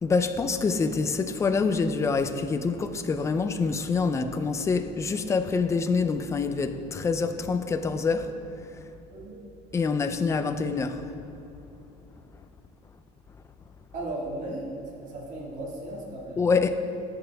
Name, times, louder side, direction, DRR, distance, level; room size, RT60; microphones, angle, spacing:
voice 1, 0.0-8.4 8.7-8.8 9.7-11.1 16.4-16.8, left 4 dB, 15° left, 0.4 m, -26 dB
voice 2, 9.1-9.4 13.9-14.7 15.0-16.5, right 1 dB, 40° right, 2.1 m, -36 dB
13.5 x 8.8 x 3.4 m
cardioid pair, 165°, 19 cm